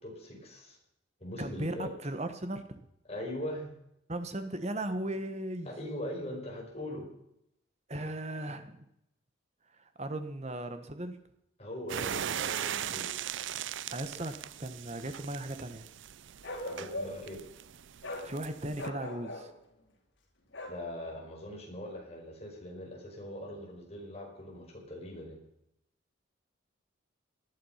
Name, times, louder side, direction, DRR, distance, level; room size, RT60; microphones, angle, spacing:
voice 1, 0.0-0.8 1.2-1.9 3.1-3.6 5.7-7.1 11.6-13.1 16.6-17.4 20.7-25.4, left 1 dB, 30° left, 0 dB, 5.3 m, -41 dB
voice 2, 1.4-2.9 4.1-5.7 7.9-8.8 9.7-11.2 13.9-15.9 18.2-19.5, right 1 dB, 35° right, 9 dB, 1.4 m, -37 dB
sound 1, 11.9-18.9, right 9 dB, 70° right, 0.5 m, -39 dB
Bark, 16.4-17.3 18.0-18.3 18.7-19.5 20.5-20.8, left 1 dB, 70° left, 4.5 m, -39 dB
18.5 x 11.5 x 5.8 m, 0.79 s
head